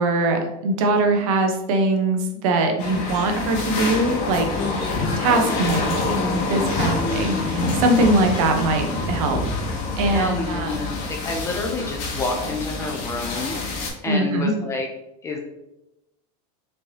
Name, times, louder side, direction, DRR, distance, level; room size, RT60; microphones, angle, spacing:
voice 1, 0.0-4.5 5.2-9.4 10.0-10.7 14.1-14.5, right 2 dB, 60° right, 4 dB, 0.8 m, -22 dB
sound 1, 2.8-13.9, left 3 dB, 45° left, 1.0 m, -26 dB
voice 2, 4.6-5.5 6.8-7.6 10.1-14.9 15.2-15.4, left 3 dB, 15° left, 2 dB, 0.4 m, -29 dB
4.4 x 3.2 x 2.8 m, 0.88 s
supercardioid pair, 165°, 20 cm